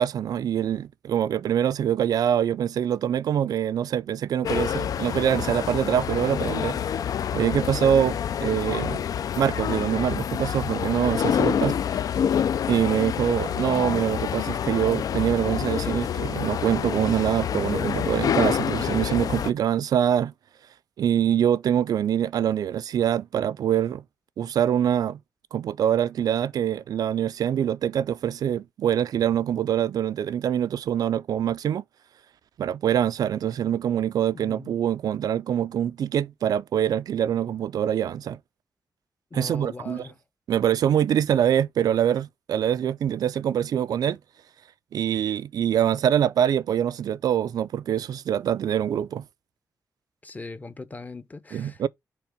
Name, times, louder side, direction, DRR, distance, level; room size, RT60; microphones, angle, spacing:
voice 1, 0.0-6.8 7.3-9.0 9.3-12.0 12.7-20.3 21.0-24.0 24.4-25.2 25.5-31.8 32.6-38.4 39.3-40.1 40.5-44.2 44.9-49.2 51.5-51.9, right 9 dB, 80° right, 0.3 m, -24 dB
sound 1, 4.4-19.5, left 8 dB, 70° left, 0.3 m, -27 dB
voice 2, 34.3-34.7 39.3-40.1 50.2-51.9, left 3 dB, 25° left, 0.7 m, -40 dB
5.9 x 3.7 x 4.9 m
wide cardioid pair, 115°, 6 cm